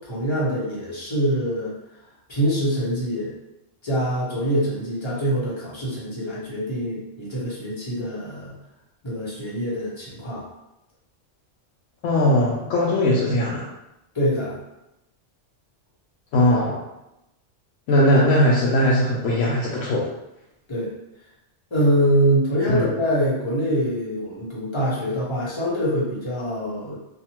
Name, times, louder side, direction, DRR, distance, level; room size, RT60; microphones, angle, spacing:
voice 1, 0.0-1.7 2.3-3.3 3.8-8.6 9.0-10.5 14.1-14.6 20.7-20.9 21.7-27.0, equal, 25° left, -6 dB, 0.8 m, -24 dB
voice 2, 12.0-13.7 16.3-16.8 17.9-20.1 22.7-22.8, left 1 dB, 90° left, -5 dB, 0.9 m, -19 dB
2.7 x 2.3 x 2.9 m, 0.90 s
omnidirectional pair, 1.3 m